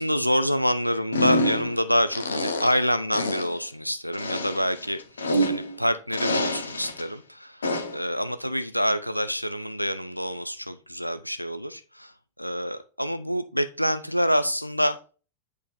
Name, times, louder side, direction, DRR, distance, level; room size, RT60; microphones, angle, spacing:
voice 1, 0.0-15.0, equal, 90° left, 12 dB, 0.4 m, -27 dB
sound 1, 1.1-1.8 2.1-2.9 3.1-3.6 4.1-5.8 6.1-7.0 7.6-8.0, left 1 dB, 70° left, 0.9 m, -27 dB
8.2 x 4.6 x 3.5 m, 0.36 s
figure-of-eight pair, 90°, 0 cm